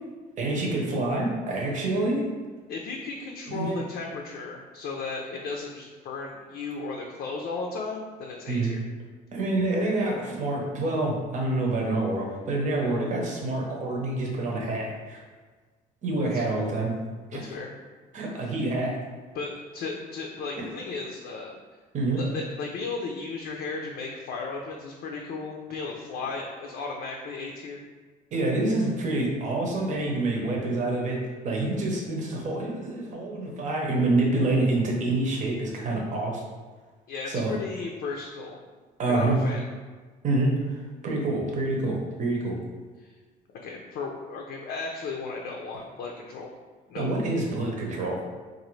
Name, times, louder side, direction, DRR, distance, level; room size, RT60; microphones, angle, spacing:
voice 1, 0.4-2.3 3.5-3.7 8.5-8.7 9.3-15.2 16.0-17.0 17.3-17.4 18.1-18.9 21.9-22.2 28.3-31.2 31.4-36.4 37.3-37.6 39.0-39.4 40.2-40.8 41.0-42.6 47.0-48.2, right 2 dB, 45° right, -1 dB, 0.8 m, -27 dB
voice 2, 2.7-8.8 16.2-16.4 17.4-17.7 18.4-18.5 19.3-21.6 22.2-27.8 37.1-38.6 39.1-39.7 43.0-43.1 43.6-46.5 46.9-47.1, left 4 dB, 70° left, 0 dB, 0.5 m, -35 dB
3.9 x 2.6 x 3.1 m, 1.4 s
cardioid pair, 110°, 17 cm